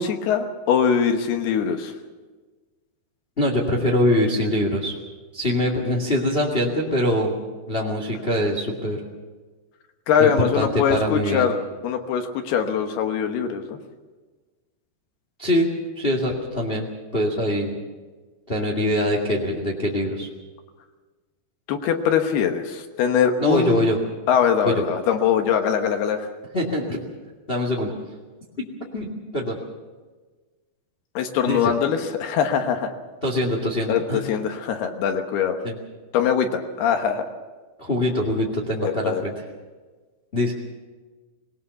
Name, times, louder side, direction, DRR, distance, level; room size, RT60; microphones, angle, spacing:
voice 1, 0.0-1.9 10.1-11.6 11.8-13.8 21.7-23.8 24.3-26.3 31.2-32.9 33.9-35.6 36.1-37.3 38.8-39.2, left 7 dB, 70° left, 6 dB, 3.1 m, -22 dB
voice 2, 3.4-5.0 5.3-9.0 10.2-11.5 15.4-15.7 15.9-16.9 17.1-17.8 18.5-20.3 23.4-24.0 24.6-24.8 26.5-27.0 27.5-27.9 28.6-28.7 28.9-29.6 31.4-31.7 33.2-34.2 35.6-35.7 37.8-39.3 40.3-40.5, left 1 dB, 35° left, 0 dB, 0.9 m, -23 dB
19.5 x 19.5 x 7.0 m, 1.4 s
omnidirectional pair, 4.9 m